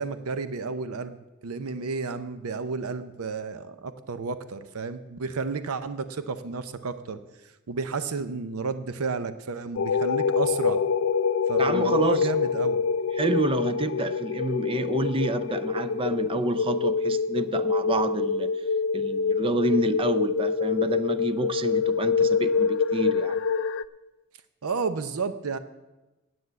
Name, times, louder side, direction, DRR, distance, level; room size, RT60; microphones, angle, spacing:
voice 1, 0.0-7.2 7.7-10.8 11.5-12.8 24.6-25.6, right 4 dB, 85° right, 0.7 m, -32 dB
sound 1, 9.8-23.8, left 5 dB, 65° left, 0.4 m, -25 dB
voice 2, 11.6-12.3 13.1-18.6 18.9-23.4, right 2 dB, 25° right, 0.4 m, -28 dB
9.7 x 7.9 x 8.0 m
head